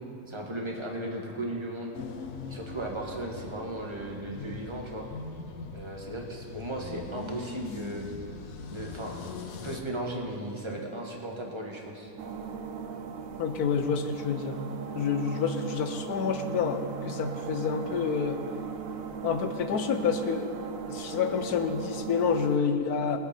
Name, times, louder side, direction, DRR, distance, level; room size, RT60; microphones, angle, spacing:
voice 1, 0.3-1.9 2.5-5.1 5.7-8.0 8.7-9.2 9.5-12.1, right 1 dB, 20° right, 0 dB, 1.6 m, -36 dB
sound 1, 1.9-9.8, left 5 dB, 70° left, 1.2 m, -42 dB
sound 2, 12.2-22.6, right 7 dB, 65° right, 1.1 m, -38 dB
voice 2, 13.4-14.6 14.9-18.4 19.2-20.5 20.9-23.2, left 6 dB, 90° left, 8 dB, 1.4 m, -28 dB
22.0 x 8.0 x 4.4 m, 2.7 s
omnidirectional pair, 1.6 m